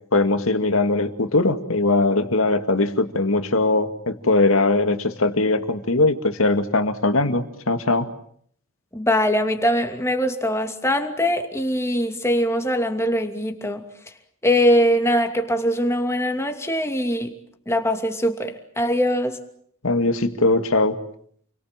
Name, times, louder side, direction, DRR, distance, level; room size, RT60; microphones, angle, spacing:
voice 1, 0.1-8.1 19.8-21.0, left 2 dB, 70° left, 8 dB, 2.2 m, -20 dB
voice 2, 8.9-13.8 14.4-17.3 17.7-19.4, equal, 15° left, 5 dB, 2.7 m, -22 dB
29.5 x 23.0 x 7.5 m, 0.64 s
head